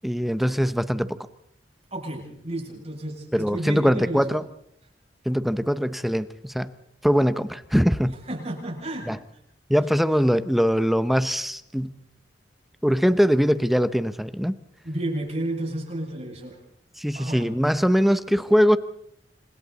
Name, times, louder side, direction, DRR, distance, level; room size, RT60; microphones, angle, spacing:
voice 1, 0.0-1.2 3.3-4.4 5.2-6.7 7.0-8.2 9.1-9.2 9.7-12.0 12.8-14.5 17.0-18.8, equal, ahead, 12 dB, 0.9 m, -22 dB
voice 2, 1.9-4.3 8.3-9.2 14.8-16.6 17.1-17.5, right 1 dB, 40° right, -1 dB, 7.4 m, -32 dB
29.5 x 26.0 x 4.2 m, 0.70 s
head